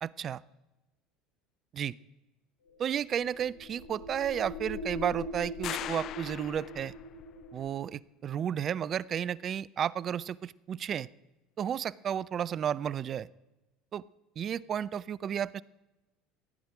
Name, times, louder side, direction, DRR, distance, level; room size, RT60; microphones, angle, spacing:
voice 1, 0.0-0.4 1.7-2.0 2.8-6.9 7.5-11.1 11.6-13.3 13.9-14.0 14.4-15.6, right 9 dB, 40° right, 21 dB, 0.4 m, -32 dB
sound 1, 2.7-7.7, left 1 dB, 75° left, 2.6 m, -41 dB
sound 2, 5.6-7.1, left 12 dB, 50° left, 0.3 m, -39 dB
15.5 x 9.5 x 4.9 m, 1.0 s
hypercardioid pair, 70°, 0 cm